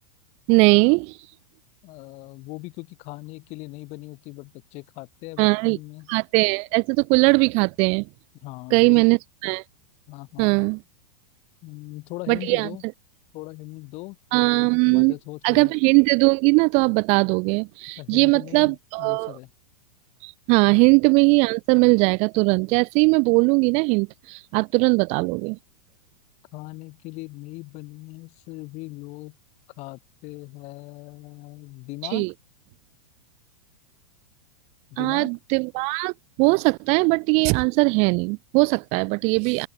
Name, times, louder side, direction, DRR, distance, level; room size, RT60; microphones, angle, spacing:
voice 1, 0.5-1.2 5.4-5.8 6.1-8.1 8.7-9.6 10.4-10.8 12.3-12.7 14.3-15.1 15.4-19.4 20.2-25.6 32.1-32.3 35.0-36.1 36.4-39.7, right 32 dB, 35° right, 0.5 m, -20 dB
voice 2, 1.8-6.1 8.4-9.1 10.1-10.7 11.6-12.8 13.3-15.7 18.0-19.5 20.7-20.8 26.5-29.3 29.8-32.3 34.9-35.3, left 23 dB, 40° left, 2.0 m, -39 dB
open air
supercardioid pair, 145°, 18 cm